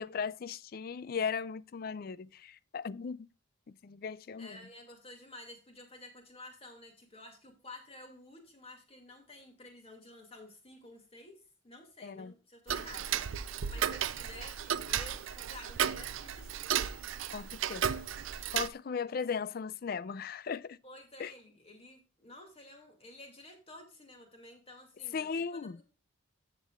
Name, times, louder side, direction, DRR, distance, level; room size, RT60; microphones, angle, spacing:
voice 1, 0.0-3.3 3.8-4.6 12.0-12.3 17.3-17.8 18.5-20.8 21.2-21.3 25.1-25.8, left 6 dB, 45° left, 0.4 m, -37 dB
voice 2, 4.4-13.1 13.7-16.6 20.8-25.8, left 1 dB, 30° left, 2.3 m, -52 dB
Tick-tock, 12.7-18.7, right 9 dB, 75° right, 0.5 m, -34 dB
13.5 x 7.2 x 2.4 m
head